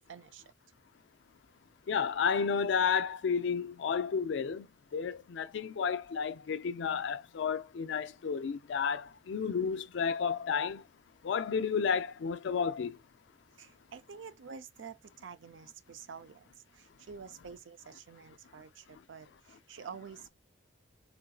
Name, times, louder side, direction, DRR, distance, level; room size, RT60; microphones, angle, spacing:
voice 1, 0.1-0.4 13.6-20.3, right 6 dB, 80° right, 0.4 m, -48 dB
voice 2, 1.9-4.7 4.9-10.8 11.2-13.0, left 6 dB, 70° left, 0.4 m, -31 dB
3.7 x 2.5 x 2.3 m
head